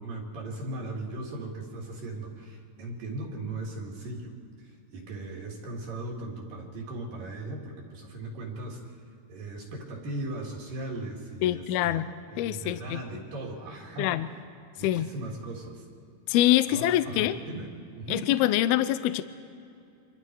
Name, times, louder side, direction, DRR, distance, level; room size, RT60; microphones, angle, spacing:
voice 1, 0.0-4.3 4.6-8.9 9.3-12.1 12.3-14.2 14.8-15.9 16.7-18.3, right 2 dB, 55° right, -1 dB, 3.7 m, -38 dB
voice 2, 11.4-12.1 12.4-13.0 14.0-14.3 14.8-15.1 16.3-17.4 18.1-19.2, left 13 dB, 85° left, 13 dB, 2.2 m, -25 dB
28.5 x 25.0 x 4.7 m, 2.6 s
omnidirectional pair, 5.4 m